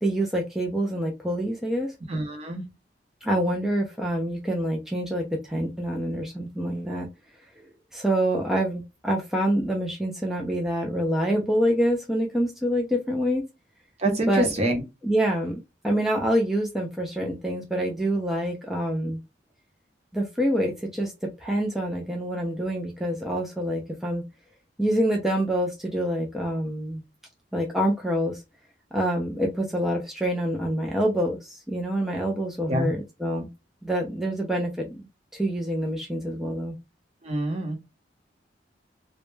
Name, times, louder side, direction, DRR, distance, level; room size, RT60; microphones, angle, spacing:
voice 1, 0.0-1.9 3.2-7.1 7.9-13.4 14.3-14.5 15.0-19.2 20.1-21.1 21.4-24.2 24.8-27.0 27.5-28.4 28.9-33.5 33.8-35.1 35.3-36.7, equal, ahead, 0.3 m, -26 dB
voice 2, 2.1-2.6 14.0-14.8 32.7-32.9 37.2-37.8, right 1 dB, 35° right, 0.7 m, -26 dB
2.1 x 2.1 x 3.0 m
head